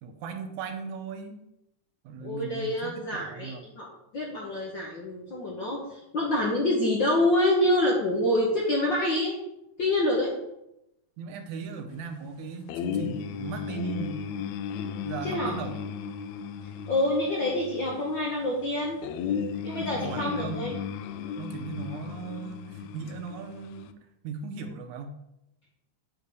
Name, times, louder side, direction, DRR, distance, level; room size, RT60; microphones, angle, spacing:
voice 1, 0.0-1.4 2.0-3.6 11.2-14.4 15.0-15.8 19.8-20.7 21.4-24.0 24.2-25.1, right 5 dB, 75° right, 6 dB, 2.1 m, -37 dB
voice 2, 2.2-3.9 4.1-9.4 9.8-10.3 15.2-15.5 16.9-19.0 19.6-20.7, left 1 dB, 60° left, -3 dB, 1.2 m, -26 dB
sound 1, 12.7-23.9, left 7 dB, 80° left, 1.7 m, -35 dB
8.2 x 3.6 x 6.7 m, 0.86 s
omnidirectional pair, 3.5 m